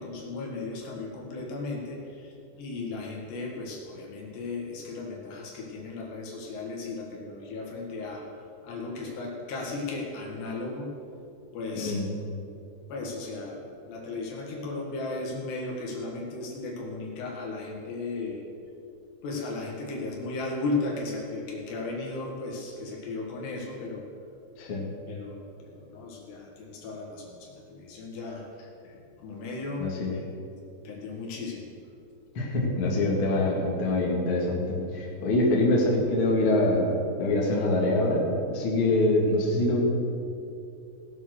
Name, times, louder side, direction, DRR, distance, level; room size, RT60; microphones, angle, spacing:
voice 1, 0.0-8.3 8.6-10.9 11.5-12.0 12.9-18.4 19.2-24.0 25.1-28.5 29.2-29.9 30.9-31.7, left 3 dB, 65° left, -1 dB, 3.5 m, -35 dB
voice 2, 11.7-12.1 24.6-24.9 29.8-30.1 32.3-39.8, left 2 dB, 45° left, -3 dB, 1.9 m, -25 dB
18.0 x 7.2 x 6.4 m, 2.6 s
omnidirectional pair, 5.7 m